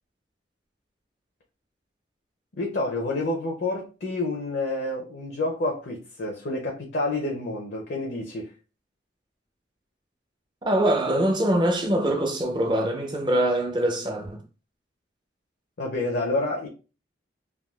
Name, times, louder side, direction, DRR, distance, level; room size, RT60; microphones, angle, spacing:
voice 1, 2.5-8.5 15.8-16.7, left 2 dB, 60° left, 0.6 m, -28 dB
voice 2, 10.6-14.4, right 1 dB, 25° right, 0.5 m, -23 dB
3.4 x 2.3 x 2.3 m
head